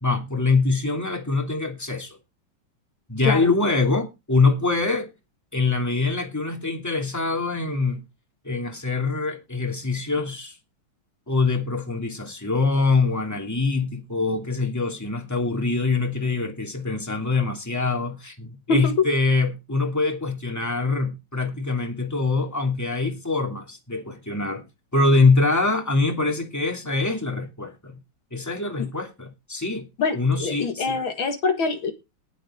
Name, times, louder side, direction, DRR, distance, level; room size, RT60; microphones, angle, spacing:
voice 1, 0.0-2.2 3.1-5.1 5.5-8.0 8.4-10.6 11.3-24.6 24.9-28.0 28.3-29.9 30.1-31.0, left 3 dB, 10° left, 2.7 m, -24 dB
voice 2, 30.0-31.9, left 4 dB, 75° left, 2.5 m, -24 dB
19.5 x 7.8 x 3.8 m
omnidirectional pair, 2.2 m